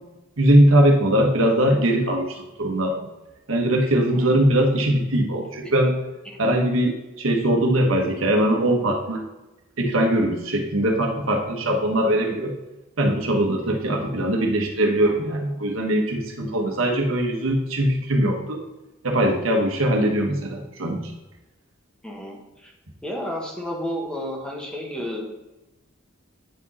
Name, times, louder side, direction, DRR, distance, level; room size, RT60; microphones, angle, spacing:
voice 1, 0.4-3.1 3.5-5.9 6.4-9.2 9.8-12.5 13.0-18.6 19.0-21.1, right 1 dB, 85° right, 2 dB, 1.3 m, -21 dB
voice 2, 4.1-4.4 5.6-5.7 6.2-6.4 22.0-22.7 23.0-25.3, equal, 5° left, -1 dB, 1.2 m, -32 dB
8.9 x 4.8 x 4.1 m, 1.0 s
head